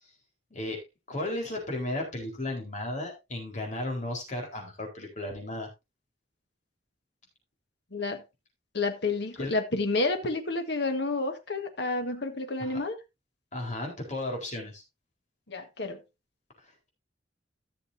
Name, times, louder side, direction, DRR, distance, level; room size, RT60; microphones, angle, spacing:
voice 1, 1.1-5.7 9.4-9.5 12.6-12.8 13.5-14.8, left 1 dB, 45° left, 4.1 m, -34 dB
voice 2, 7.9-8.2 8.7-13.0 15.5-16.0, left 3 dB, 70° left, 1.6 m, -30 dB
15.0 x 6.7 x 2.7 m
head